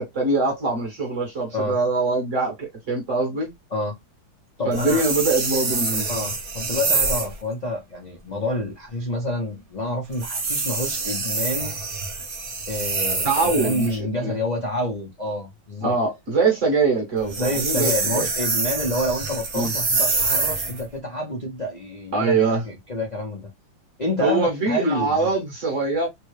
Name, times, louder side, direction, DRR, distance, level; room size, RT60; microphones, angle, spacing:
voice 1, 0.0-3.5 4.6-6.1 13.2-14.3 15.8-18.3 19.5-19.7 22.1-22.6 24.2-26.1, right 3 dB, 45° right, 1.4 m, -23 dB
voice 2, 4.6-5.0 6.1-11.8 12.7-15.9 17.4-22.4 22.6-23.5 24.0-25.3, left 1 dB, 40° left, 0.6 m, -28 dB
sound 1, 4.7-7.4 10.1-14.0 17.2-20.8, right 3 dB, 60° right, 0.5 m, -26 dB
3.6 x 2.3 x 3.1 m
omnidirectional pair, 2.1 m